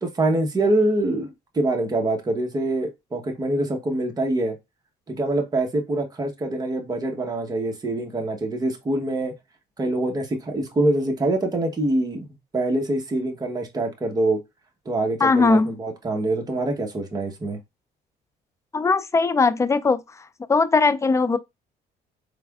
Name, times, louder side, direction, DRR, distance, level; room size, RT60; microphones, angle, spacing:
voice 1, 0.0-4.6 5.1-9.3 9.8-14.4 14.8-17.6, right 2 dB, 20° right, 1.0 m, -25 dB
voice 2, 15.2-15.8 18.7-20.0 20.5-21.4, left 4 dB, 15° left, 0.4 m, -19 dB
4.4 x 3.3 x 2.3 m
cardioid pair, 110°, 17 cm